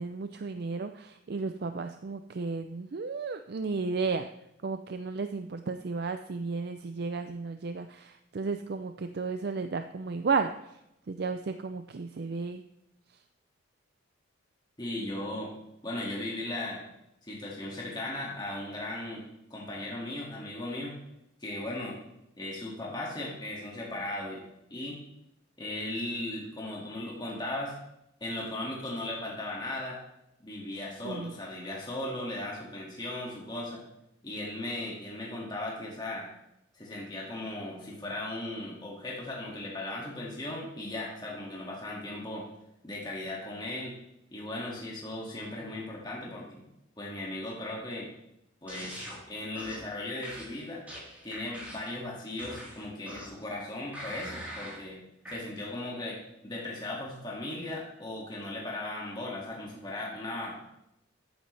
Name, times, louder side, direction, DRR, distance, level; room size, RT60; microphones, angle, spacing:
voice 1, 0.0-4.3 4.6-10.8 11.1-12.6 31.0-31.3, right 4 dB, 50° right, 8 dB, 0.4 m, -33 dB
voice 2, 14.8-15.5 15.8-16.8 17.2-19.2 19.5-21.0 21.4-22.0 22.4-24.4 24.7-25.0 25.6-27.8 28.2-30.0 30.4-33.8 34.2-36.3 36.7-42.5 42.8-43.9 44.3-46.6 47.0-48.1 48.6-50.8 51.2-55.0 55.3-56.2 56.4-60.6, left 1 dB, 20° left, -4 dB, 2.1 m, -37 dB
sound 1, 48.7-49.2 49.5-49.9 50.2-51.9 52.4-53.4 53.9-54.8 55.2-55.4, equal, 10° right, 3.7 m, -43 dB
13.0 x 9.2 x 3.3 m, 0.83 s
head